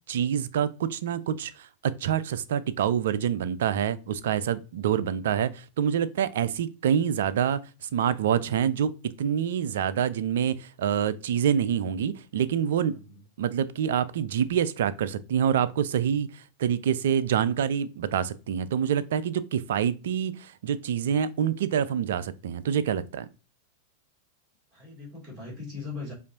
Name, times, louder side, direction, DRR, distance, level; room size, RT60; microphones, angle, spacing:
voice 1, 0.1-12.9 13.4-23.3, right 8 dB, 60° right, 0.3 m, -26 dB
voice 2, 12.9-13.2 24.7-26.1, left 4 dB, 25° right, 2.2 m, -39 dB
5.0 x 2.5 x 2.6 m
figure-of-eight pair, 90°, 0 cm